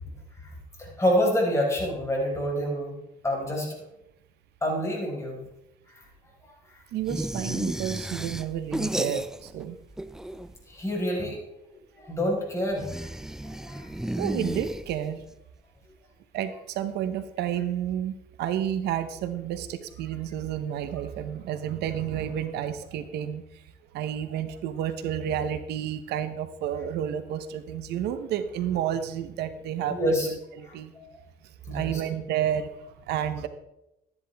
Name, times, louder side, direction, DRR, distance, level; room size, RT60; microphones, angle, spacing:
voice 1, 0.8-2.9 3.2-3.7 4.6-5.4 5.9-6.0 10.7-11.4 11.9-13.1 13.6-13.9 29.9-30.3 30.9-31.2 31.7-32.0, equal, 15° left, -3 dB, 4.6 m, -27 dB
voice 2, 6.9-9.8 14.2-15.2 16.3-23.6 23.9-30.9 31.4-33.5, right 10 dB, 80° right, 11 dB, 0.8 m, -31 dB
sound 1, 7.1-9.6 9.9-10.7 12.7-15.2, right 1 dB, 5° right, 0.4 m, -33 dB
12.5 x 10.5 x 3.4 m, 0.88 s
cardioid pair, 110°, 17 cm